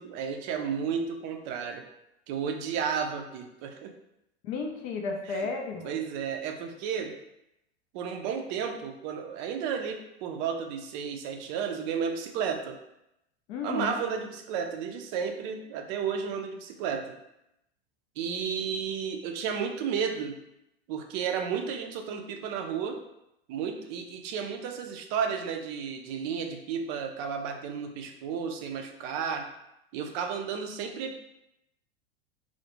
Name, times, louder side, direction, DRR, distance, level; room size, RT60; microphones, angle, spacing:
voice 1, 0.0-1.8 2.3-3.9 5.3-5.4 5.8-7.2 7.9-12.8 13.6-17.2 18.2-20.4 20.9-23.0 23.5-29.5 29.9-31.2, right 7 dB, 45° right, 4 dB, 0.4 m, -32 dB
voice 2, 4.4-5.9 13.5-14.0, left 4 dB, 45° left, 2 dB, 0.5 m, -33 dB
2.3 x 2.1 x 2.9 m, 0.84 s
hypercardioid pair, 95°, 32 cm